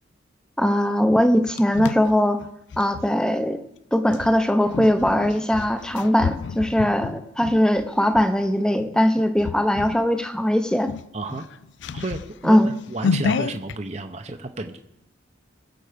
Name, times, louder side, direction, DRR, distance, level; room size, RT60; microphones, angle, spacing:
voice 1, 0.6-2.4 2.8-3.6 3.9-10.9 12.4-12.7, equal, 5° left, 8 dB, 0.7 m, -20 dB
sound 1, 1.1-3.1 4.1-8.3 8.8-9.0 9.4-10.1 10.4-10.5 10.8-13.8, left 5 dB, 65° left, 0.4 m, -30 dB
voice 2, 11.1-11.4 11.9-14.8, right 2 dB, 35° right, 6 dB, 0.7 m, -32 dB
21.5 x 7.7 x 5.1 m, 0.85 s
head